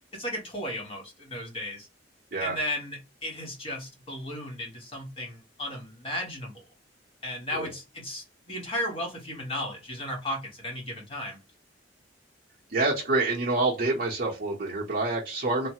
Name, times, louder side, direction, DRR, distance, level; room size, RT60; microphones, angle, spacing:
voice 1, 0.1-1.9 2.4-6.6 7.2-11.4, left 1 dB, 30° left, 0 dB, 1.3 m, -35 dB
voice 2, 12.7-15.7, right 2 dB, 50° right, -5 dB, 0.8 m, -27 dB
3.1 x 2.0 x 2.9 m, 0.28 s
head